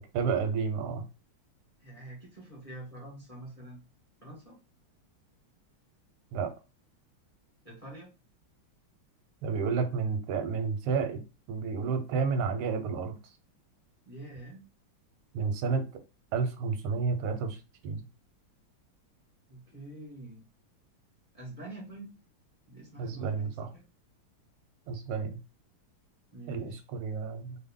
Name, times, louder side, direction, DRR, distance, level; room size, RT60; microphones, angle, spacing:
voice 1, 0.1-1.0 6.3-6.5 9.4-11.2 11.5-13.2 15.3-15.8 16.3-17.6 17.8-18.0 23.0-23.7 24.9-25.4 26.5-27.6, right 5 dB, 90° right, 7 dB, 1.6 m, -30 dB
voice 2, 1.8-3.8 4.2-4.6 7.6-8.1 14.0-14.7 19.5-20.5 21.3-22.1 22.7-23.8 26.3-26.8, right 1 dB, 30° left, -3 dB, 0.7 m, -46 dB
3.6 x 2.1 x 3.5 m, 0.30 s
omnidirectional pair, 2.3 m